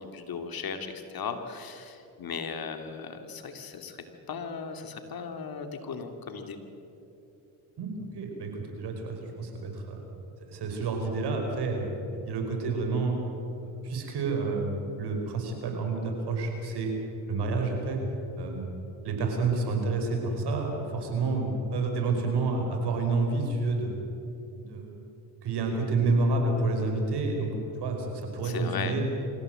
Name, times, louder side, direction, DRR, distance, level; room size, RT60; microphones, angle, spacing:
voice 1, 0.0-6.6 28.4-28.9, left 6 dB, 55° left, 6 dB, 2.7 m, -37 dB
voice 2, 7.8-10.0 10.5-13.2 13.6-16.9 17.3-18.0 18.4-18.7 19.0-23.9 24.6-25.0 25.4-27.5 27.8-29.0, right 3 dB, 70° right, 3 dB, 5.3 m, -29 dB
25.5 x 16.0 x 7.9 m, 3.0 s
supercardioid pair, 70°, 42 cm